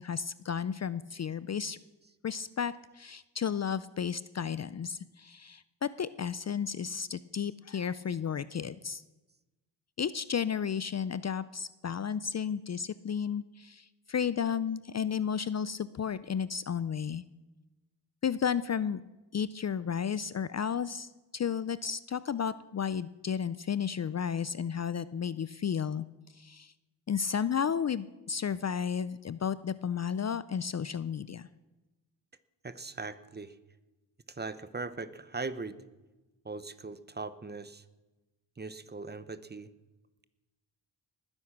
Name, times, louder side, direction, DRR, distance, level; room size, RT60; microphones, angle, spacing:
voice 1, 0.0-1.8 2.2-9.0 10.0-17.2 18.2-19.0 19.3-26.1 26.3-26.7 27.1-31.5, left 7 dB, 40° left, 16 dB, 0.5 m, -33 dB
voice 2, 32.6-33.5 34.3-35.8 36.4-37.8 38.6-39.7, right 3 dB, 25° right, 14 dB, 0.9 m, -40 dB
20.0 x 9.8 x 6.0 m, 1.1 s
cardioid pair, 85°, 43 cm